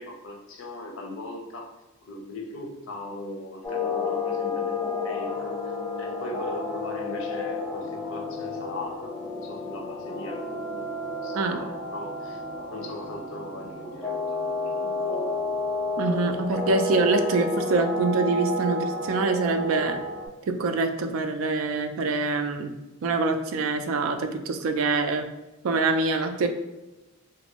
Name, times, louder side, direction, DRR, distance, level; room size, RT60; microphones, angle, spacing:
voice 1, 0.0-1.7 2.1-12.4 12.7-15.2, left 1 dB, 70° left, 1 dB, 0.6 m, -40 dB
sound 1, 3.6-20.3, left 2 dB, 10° left, 0.6 m, -31 dB
voice 2, 16.0-20.0 20.5-22.7 23.0-25.3 25.6-26.5, right 3 dB, 75° right, 6 dB, 0.4 m, -25 dB
2.5 x 2.5 x 2.9 m, 1.1 s
head